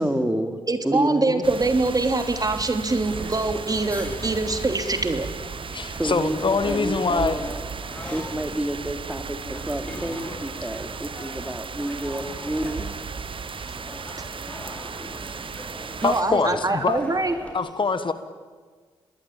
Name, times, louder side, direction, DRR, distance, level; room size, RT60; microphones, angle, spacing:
voice 1, 0.0-0.6 0.8-1.4 5.8-7.6 8.1-9.4 9.7-13.0, right 1 dB, 10° right, 7 dB, 3.6 m, -29 dB
voice 2, 0.7-5.3 16.0-17.3, right 2 dB, 35° right, 7 dB, 3.1 m, -24 dB
sound 1, 1.4-16.2, right 6 dB, 50° right, 0.9 m, -36 dB
sound 2, 3.0-17.5, left 1 dB, 10° left, 5.7 m, -41 dB
voice 3, 5.7-7.4 16.0-17.0 17.5-18.1, left 4 dB, 45° left, 11 dB, 1.8 m, -24 dB
27.0 x 20.0 x 9.0 m, 1.5 s
supercardioid pair, 45°, 11 cm